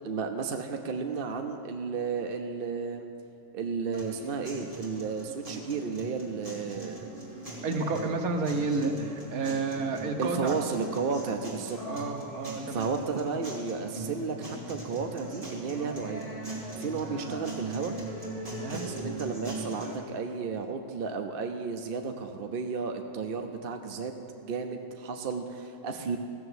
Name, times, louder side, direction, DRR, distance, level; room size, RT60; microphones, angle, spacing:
voice 1, 0.0-3.1 3.5-7.0 10.2-11.8 12.7-16.3 16.8-17.9 18.7-26.2, right 5 dB, 50° right, 5 dB, 0.7 m, -33 dB
sound 1, 3.9-19.9, right 2 dB, 25° right, 2.6 m, -40 dB
voice 2, 7.6-10.5 11.9-12.9 18.5-18.9, right 3 dB, 70° right, 4 dB, 1.5 m, -30 dB
15.0 x 6.9 x 8.0 m, 2.6 s
omnidirectional pair, 1.6 m